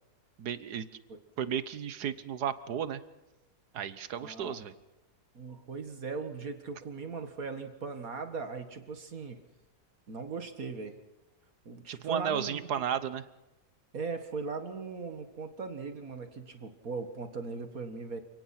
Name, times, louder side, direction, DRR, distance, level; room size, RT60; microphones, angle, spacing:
voice 1, 0.4-0.9 1.4-3.0 3.7-4.7 11.9-13.3, right 8 dB, 80° right, 14 dB, 1.6 m, -33 dB
voice 2, 4.2-4.6 5.3-9.4 10.1-10.9 11.7-12.7 13.9-18.2, right 4 dB, 60° right, 7 dB, 2.1 m, -39 dB
29.0 x 18.5 x 6.0 m, 0.98 s
omnidirectional pair, 1.7 m